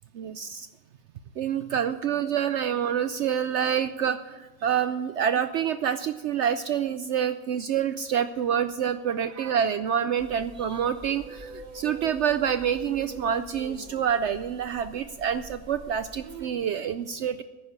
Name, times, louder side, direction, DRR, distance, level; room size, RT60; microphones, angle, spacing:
voice 1, 0.1-0.7 1.4-17.4, right 8 dB, 65° right, 11 dB, 0.8 m, -27 dB
sound 1, 10.2-16.5, right 1 dB, 35° right, 1.2 m, -44 dB
10.5 x 9.9 x 8.1 m, 1.3 s
omnidirectional pair, 1.5 m